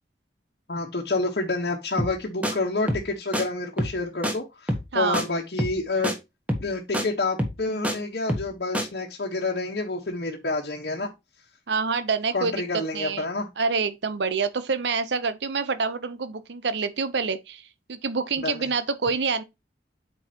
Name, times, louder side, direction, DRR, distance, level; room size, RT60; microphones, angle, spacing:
voice 1, 0.7-6.1 6.6-11.1 12.3-13.5 18.4-18.7, left 3 dB, 60° left, 1.2 m, -28 dB
sound 1, 2.0-2.2 2.4-2.5 2.9-3.1 3.3-3.4 3.8-4.0 4.2-4.3 4.7-4.9 5.1-5.2 5.6-5.8 6.0-6.1 6.5-6.7 6.9-7.0 7.4-7.9 8.3-8.5 8.7-8.9, equal, 10° right, 1.3 m, -26 dB
voice 2, 4.9-5.2 11.7-13.2 13.6-17.6 17.9-19.4, right 5 dB, 75° right, 0.7 m, -27 dB
8.6 x 4.6 x 2.9 m
head